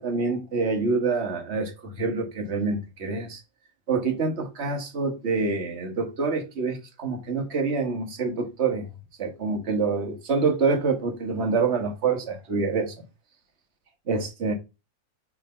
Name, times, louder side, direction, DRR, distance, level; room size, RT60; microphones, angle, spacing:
voice 1, 0.0-3.4 3.9-8.9 9.2-12.9 14.1-14.5, right 4 dB, 35° right, 1.5 m, -26 dB
6.6 x 3.8 x 5.6 m
omnidirectional pair, 2.4 m